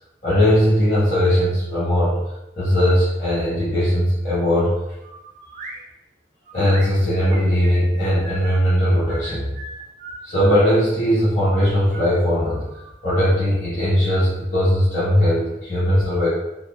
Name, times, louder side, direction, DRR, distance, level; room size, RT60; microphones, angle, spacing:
voice 1, 0.2-2.2 2.6-4.7 6.5-9.5 10.2-12.7 13.0-16.3, equal, 50° left, -12 dB, 1.1 m, -19 dB
BP Whistle Song, 5.0-5.8 6.5-8.5 9.1-10.9 11.4-13.3, right 2 dB, 45° right, 0.6 m, -39 dB
4.1 x 2.0 x 3.4 m, 0.93 s
head